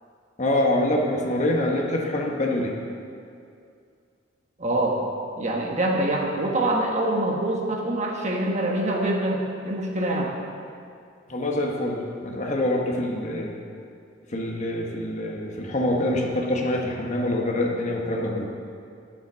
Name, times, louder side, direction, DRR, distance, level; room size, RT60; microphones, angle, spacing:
voice 1, 0.4-2.7 11.3-13.5 14.3-18.5, left 1 dB, 40° left, 0 dB, 1.2 m, -25 dB
voice 2, 4.6-5.0 5.4-10.3, right 1 dB, 40° right, 0 dB, 1.3 m, -25 dB
10.5 x 7.3 x 6.2 m, 2.4 s
head